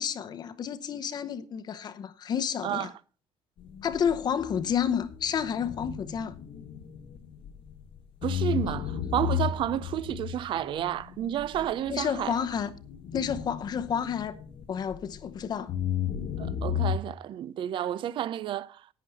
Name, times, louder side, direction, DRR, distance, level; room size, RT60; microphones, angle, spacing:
voice 1, 0.0-2.9 3.8-6.4 11.9-12.7 13.1-14.4 14.7-15.7, left 8 dB, 45° left, 0.8 m, -30 dB
sound 1, 3.6-7.8 8.2-15.3 15.7-17.0, left 9 dB, 60° left, 1.4 m, -34 dB
voice 2, 8.2-12.4 16.4-18.8, right 11 dB, 55° right, 0.5 m, -31 dB
11.0 x 9.3 x 4.1 m
cardioid pair, 135°, 10 cm